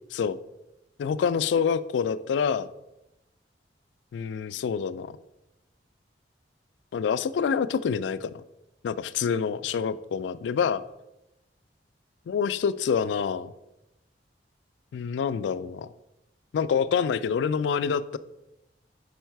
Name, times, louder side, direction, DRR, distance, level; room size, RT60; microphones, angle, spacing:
voice 1, 1.0-2.7 4.1-5.2 6.9-8.4 8.8-10.8 12.3-13.5 14.9-15.9 16.5-18.2, left 6 dB, 80° left, 15 dB, 0.3 m, -27 dB
5.5 x 4.6 x 4.5 m, 0.94 s
head